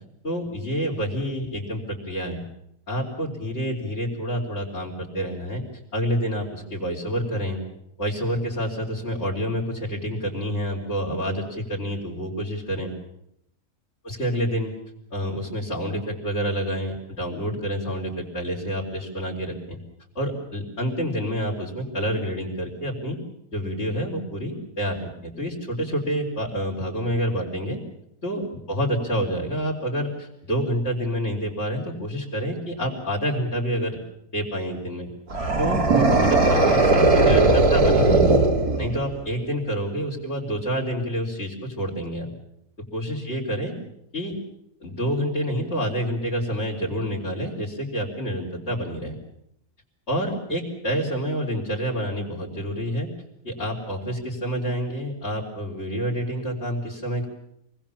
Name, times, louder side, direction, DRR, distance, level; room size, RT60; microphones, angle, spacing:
voice 1, 0.2-2.4 2.9-5.6 5.9-7.6 8.0-12.9 14.0-14.7 15.1-19.8 20.1-23.2 23.5-27.8 28.2-34.0 34.3-35.1 35.6-38.4 38.8-42.3 42.9-43.7 44.1-44.3 44.8-49.1 50.1-53.1 53.4-57.3, equal, 45° left, -6 dB, 4.7 m, -28 dB
sound 1, 35.3-39.2, right 2 dB, 75° right, 3.6 m, -18 dB
28.0 x 20.5 x 7.3 m, 0.79 s
omnidirectional pair, 1.6 m